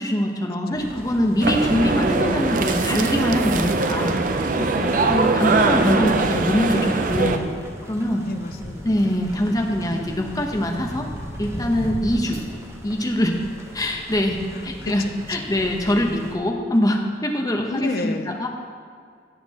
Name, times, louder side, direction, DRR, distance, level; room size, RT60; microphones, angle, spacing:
voice 1, 0.0-4.2 4.6-4.7 5.0-7.5 7.9-8.3 8.8-11.1 11.4-12.4 12.8-13.4 13.7-18.5, equal, 20° left, 2 dB, 0.8 m, -23 dB
sound 1, 0.7-16.3, equal, 15° right, 0.8 m, -37 dB
sound 2, 1.4-7.4, right 3 dB, 45° right, 0.5 m, -21 dB
voice 2, 4.7-5.3 8.2-8.8 9.5-9.7 14.5-15.1 17.4-18.3, left 3 dB, 55° left, 8 dB, 0.5 m, -33 dB
16.5 x 6.8 x 2.9 m, 2.2 s
head